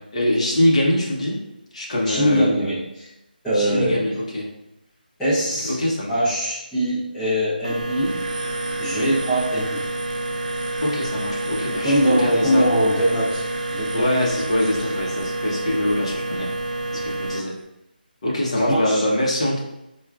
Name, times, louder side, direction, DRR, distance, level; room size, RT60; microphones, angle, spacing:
voice 1, 0.1-1.4 1.7-2.5 3.5-4.5 5.7-6.1 9.0-9.1 10.8-12.7 13.9-16.5 16.9-17.5 18.2-19.6, left 1 dB, 40° left, -3 dB, 0.8 m, -23 dB
voice 2, 2.0-3.1 3.4-4.0 5.2-5.8 6.1-8.2 8.8-9.9 11.8-14.1 14.7-14.8 15.1-15.2 16.9-17.0 18.5-19.0, equal, 5° left, -15 dB, 0.6 m, -22 dB
sound 1, 7.6-17.4, right 2 dB, 50° right, 0.4 m, -28 dB
4.4 x 2.4 x 2.3 m, 0.90 s
figure-of-eight pair, 170°, 5 cm